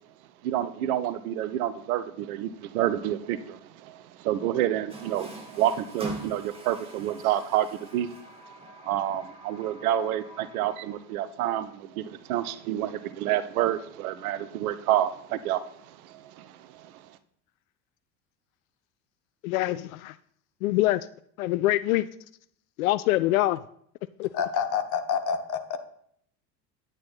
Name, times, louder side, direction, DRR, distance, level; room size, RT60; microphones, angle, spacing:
voice 1, 0.4-8.1 8.8-17.0, right 12 dB, 60° right, 15 dB, 0.9 m, -29 dB
Water tap faucet, 4.9-11.2, right 1 dB, 10° right, 2.8 m, -43 dB
voice 2, 19.4-20.1 20.6-21.1 21.4-22.1 22.8-23.6 24.2-24.3, left 16 dB, 60° left, 16 dB, 0.5 m, -24 dB
voice 3, 24.3-25.8, left 7 dB, 35° left, 9 dB, 1.3 m, -28 dB
9.5 x 9.0 x 4.2 m, 0.65 s
figure-of-eight pair, 70°, 49 cm